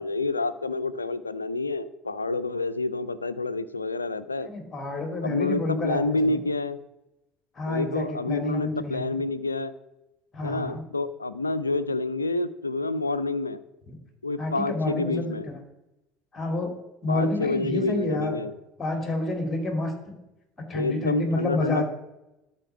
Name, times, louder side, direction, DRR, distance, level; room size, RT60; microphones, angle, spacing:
voice 1, 0.0-4.5 5.2-6.8 7.7-9.7 10.4-13.6 14.2-15.5 17.1-18.5 20.7-21.8, left 2 dB, 85° left, 15 dB, 0.4 m, -28 dB
voice 2, 4.4-6.4 7.6-9.2 10.3-10.8 13.9-14.0 14.4-15.6 16.3-16.7 17.0-18.4 18.8-20.1 20.7-21.8, left 2 dB, 25° left, 4 dB, 2.5 m, -29 dB
12.0 x 4.4 x 5.7 m, 0.93 s
figure-of-eight pair, 65°, 0 cm